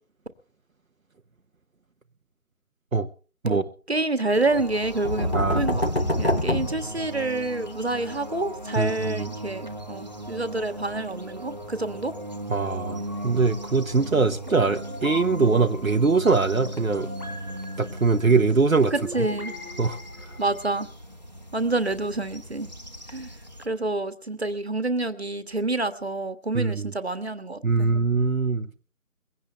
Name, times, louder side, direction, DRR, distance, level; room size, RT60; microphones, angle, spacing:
voice 1, 3.9-12.1 18.9-19.5 20.4-20.9 21.5-22.7 23.1-23.3 23.6-27.9, right 2 dB, 45° right, 1.6 m, -28 dB
sound 1, 4.3-23.7, right 1 dB, 30° right, 1.3 m, -38 dB
sound 2, 4.7-7.6, left 1 dB, 45° left, 0.6 m, -26 dB
voice 2, 8.7-9.3 12.5-17.1 17.8-18.9 19.8-20.3 26.5-26.9 27.6-28.7, right 4 dB, 65° right, 1.1 m, -22 dB
sound 3, 13.1-20.8, left 2 dB, 85° left, 7.6 m, -41 dB
21.0 x 16.5 x 3.4 m
figure-of-eight pair, 175°, 44 cm